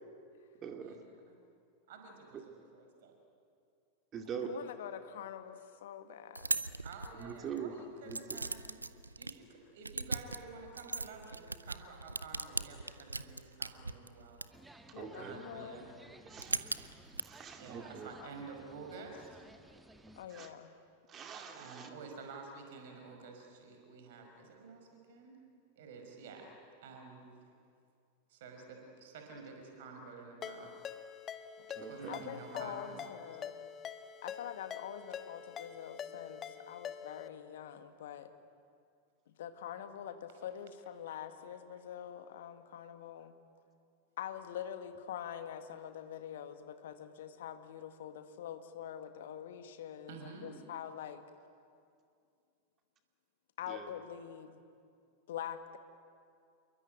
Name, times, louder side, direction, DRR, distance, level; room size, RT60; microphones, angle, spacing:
voice 1, 0.6-1.0 2.3-2.4 4.1-4.5 7.1-7.7 8.0-8.5 14.9-15.4 16.3-16.6 17.2-18.1 20.3-20.5 21.1-21.9 31.8-32.2 53.7-53.9, right 7 dB, 30° right, 5 dB, 2.4 m, -43 dB
voice 2, 1.9-3.2 4.2-4.5 6.8-8.8 9.2-14.4 15.1-16.0 17.5-19.5 21.5-25.4 25.8-26.5 26.8-27.3 28.3-30.7 31.8-33.0 50.1-50.5, right 4 dB, 55° right, 3 dB, 5.6 m, -50 dB
voice 3, 4.4-6.6 14.9-15.9 20.2-20.7 32.1-33.6 34.2-38.3 39.3-43.4 44.2-50.2 50.4-51.2 53.6-54.6 55.3-55.8, left 9 dB, 60° left, 9 dB, 1.9 m, -45 dB
sound 1, 6.3-7.6 8.1-9.3 9.8-14.5 16.3-17.2, right 3 dB, 80° right, 0.8 m, -39 dB
sound 2, 14.5-20.3, right 1 dB, 5° right, 1.7 m, -57 dB
Ringtone, 30.4-37.3, left 8 dB, 25° left, 1.3 m, -46 dB
28.0 x 23.0 x 9.2 m, 2.4 s
figure-of-eight pair, 90°, 0 cm